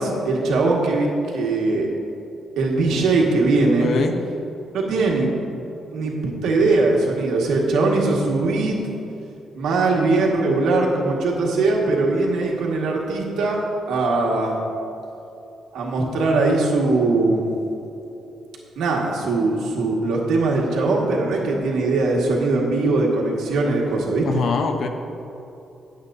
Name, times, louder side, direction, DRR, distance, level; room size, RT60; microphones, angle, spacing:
voice 1, 0.0-1.9 2.6-3.9 4.7-5.3 5.9-8.8 9.5-14.6 15.7-17.5 18.8-24.5, right 3 dB, 90° right, -2 dB, 1.8 m, -21 dB
voice 2, 3.8-4.2 24.2-24.9, left 4 dB, 55° left, 5 dB, 0.9 m, -23 dB
18.0 x 8.0 x 2.7 m, 2.9 s
cardioid pair, 140°, 0 cm